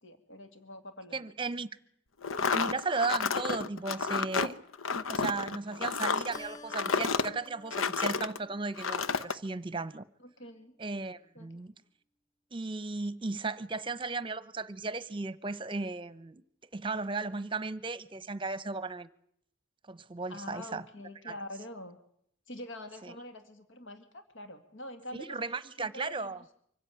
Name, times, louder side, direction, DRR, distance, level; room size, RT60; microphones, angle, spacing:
voice 1, 0.0-1.3 10.2-10.7 11.3-11.5 20.3-22.0 22.5-25.4 25.8-26.3, left 1 dB, 70° left, 2.1 m, -45 dB
voice 2, 1.1-1.7 2.5-4.6 5.1-10.0 10.8-11.7 12.5-16.4 16.7-19.1 19.9-20.8 21.3-21.4 23.0-23.2 25.1-26.4, right 3 dB, 25° right, 0.9 m, -35 dB
sound 1, 2.2-8.4 8.8-9.4, left 5 dB, 85° left, 0.9 m, -31 dB
Keyboard (musical), 6.3-9.2, left 2 dB, 40° left, 1.5 m, -52 dB
25.0 x 16.0 x 9.2 m
head